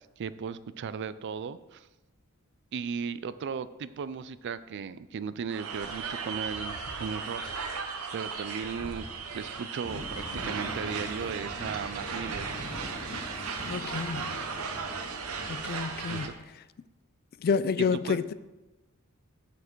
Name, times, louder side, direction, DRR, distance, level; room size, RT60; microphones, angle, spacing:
voice 1, 0.2-1.9 2.7-9.1 9.3-12.5 16.1-16.3 17.8-18.2, right 6 dB, 55° right, 0.3 m, -36 dB
sound 1, 5.5-16.3, right 5 dB, 80° right, 0.8 m, -36 dB
sound 2, 9.8-16.2, left 1 dB, 20° left, 2.0 m, -43 dB
voice 2, 13.7-14.4 15.5-16.3 17.4-18.3, left 5 dB, 45° left, 0.3 m, -29 dB
7.3 x 6.5 x 4.5 m
head